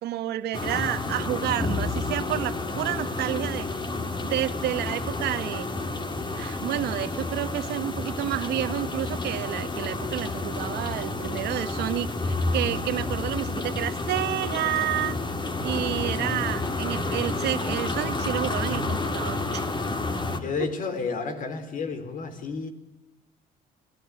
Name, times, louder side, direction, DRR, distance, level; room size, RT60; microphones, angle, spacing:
voice 1, 0.0-3.7 4.2-5.7 6.4-15.1 15.6-19.6 20.6-20.7, right 13 dB, 75° right, 10 dB, 1.7 m, -30 dB
sound 1, 0.5-20.4, left 2 dB, 25° left, 3.1 m, -30 dB
voice 2, 20.4-22.7, left 5 dB, 50° left, 9 dB, 4.1 m, -31 dB
26.0 x 19.5 x 9.8 m, 0.98 s
cardioid pair, 110°, 17 cm